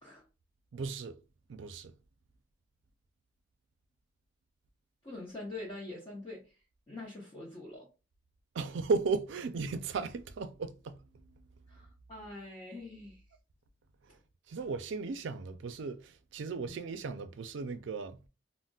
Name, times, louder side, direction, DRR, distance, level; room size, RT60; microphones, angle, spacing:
voice 1, 0.7-1.2 1.5-1.9 8.5-11.5 14.0-14.2 14.5-18.2, right 4 dB, 75° right, 0.4 m, -36 dB
voice 2, 5.0-6.6 6.9-7.9 11.7-13.2 16.5-16.9, left 2 dB, 25° left, 0.7 m, -45 dB
3.8 x 2.0 x 2.2 m
head